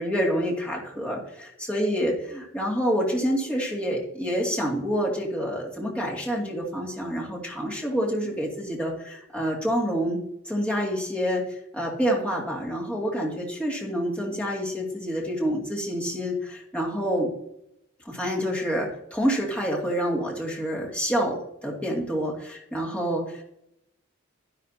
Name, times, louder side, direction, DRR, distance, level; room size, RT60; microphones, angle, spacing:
voice 1, 0.0-10.2 10.4-17.3 18.0-23.4, equal, 5° left, -3 dB, 2.3 m, -27 dB
11.0 x 11.0 x 2.8 m, 0.79 s
head